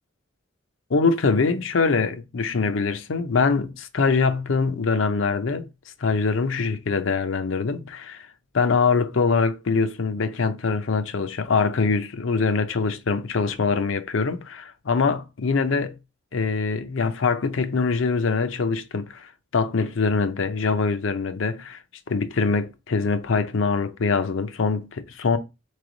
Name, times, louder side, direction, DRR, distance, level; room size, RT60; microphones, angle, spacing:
voice 1, 0.9-5.7 6.0-8.3 8.5-16.0 16.3-21.8 22.1-25.4, left 4 dB, 80° left, 0.6 m, -23 dB
4.2 x 3.3 x 3.8 m
head